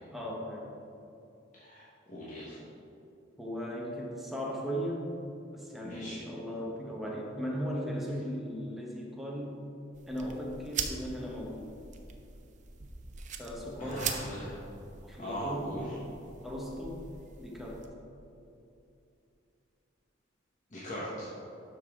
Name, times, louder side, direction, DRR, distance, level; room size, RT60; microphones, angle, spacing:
voice 1, 0.1-0.7 3.4-5.1 5.5-9.6 10.1-11.7 13.4-14.1 15.0-15.8 16.4-17.0 17.4-17.9, equal, ahead, -3 dB, 1.2 m, -37 dB
voice 2, 1.6-2.6 5.8-6.2 13.8-14.6 15.2-16.0 20.7-21.3, equal, 40° left, -8 dB, 1.4 m, -39 dB
sound 1, 9.9-17.9, right 6 dB, 40° right, 0.7 m, -42 dB
11.5 x 5.6 x 3.7 m, 2.8 s
head